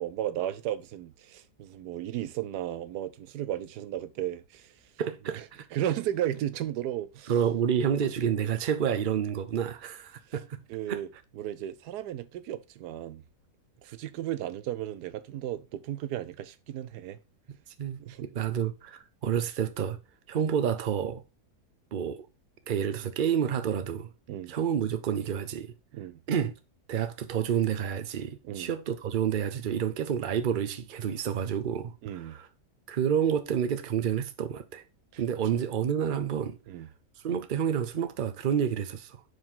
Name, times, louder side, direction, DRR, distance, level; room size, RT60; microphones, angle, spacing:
voice 1, 0.0-4.7 5.3-5.4 5.7-7.3 10.7-11.1 11.3-13.2 13.8-17.2 18.0-18.3 24.3-24.6 25.9-26.2 28.4-28.7 32.0-32.4 35.1-35.2 36.7-36.9, right 12 dB, 85° right, 1.2 m, -34 dB
voice 2, 5.0-5.4 7.3-10.6 10.9-11.0 17.8-20.0 20.3-21.2 21.9-22.3 22.7-24.1 24.5-25.7 26.3-26.5 26.9-32.5 32.9-34.8 35.2-36.6 37.2-39.2, right 8 dB, 50° right, 0.6 m, -29 dB
5.0 x 4.6 x 5.4 m
omnidirectional pair, 1.7 m